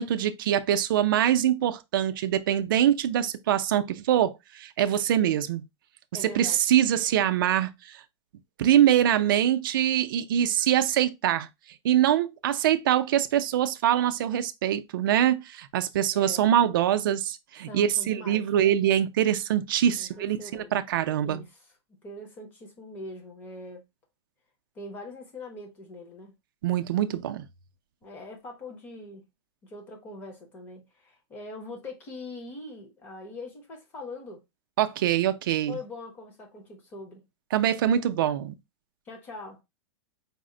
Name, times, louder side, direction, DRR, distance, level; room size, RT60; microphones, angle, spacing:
voice 1, 0.0-5.6 6.2-8.0 8.6-11.5 11.8-21.4 26.6-27.4 34.8-35.8 37.5-38.5, right 11 dB, 50° right, 0.4 m, -24 dB
voice 2, 6.1-6.6 16.1-16.5 17.6-18.4 20.0-20.7 21.2-21.6 22.0-23.9 24.7-26.3 28.0-29.2 29.6-34.4 35.7-37.2 39.1-39.6, left 2 dB, 15° left, 0.7 m, -42 dB
4.1 x 2.0 x 3.6 m
supercardioid pair, 180°, 14 cm